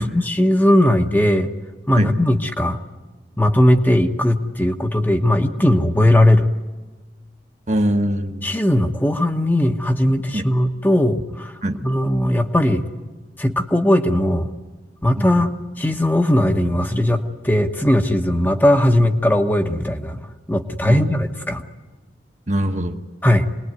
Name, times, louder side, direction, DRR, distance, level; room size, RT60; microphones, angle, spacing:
voice 1, 0.0-1.5 1.9-2.8 3.4-6.5 8.4-11.5 11.8-12.8 13.4-14.5 15.0-15.5 15.8-20.2 20.5-21.6 23.2-23.5, left 1 dB, 10° left, 5 dB, 1.0 m, -18 dB
voice 2, 7.7-8.5 10.3-10.5 11.6-11.8 15.2-15.5 20.9-21.2 22.5-23.0, right 1 dB, 40° right, 5 dB, 1.2 m, -22 dB
26.0 x 20.5 x 9.5 m, 1.3 s
head